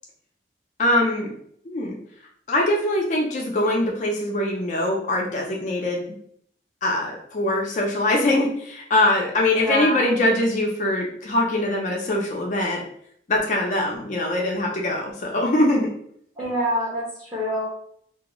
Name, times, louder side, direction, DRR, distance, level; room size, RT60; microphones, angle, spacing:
voice 1, 0.8-1.4 1.7-2.0 2.5-6.1 6.8-12.8 13.3-15.9, left 1 dB, 40° left, -1 dB, 0.4 m, -22 dB
voice 2, 9.5-10.1 16.4-17.7, equal, 15° right, -8 dB, 0.7 m, -26 dB
2.2 x 2.0 x 2.9 m, 0.66 s
head